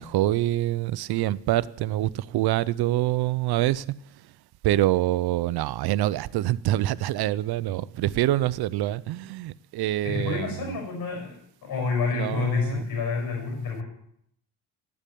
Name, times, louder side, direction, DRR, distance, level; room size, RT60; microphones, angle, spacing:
voice 1, 0.0-3.8 4.6-10.5 12.1-12.8, right 15 dB, 70° right, 19 dB, 0.7 m, -25 dB
voice 2, 10.0-13.8, left 4 dB, 60° left, 2 dB, 6.0 m, -28 dB
13.0 x 8.8 x 8.5 m, 0.73 s
cardioid pair, 100°, 39 cm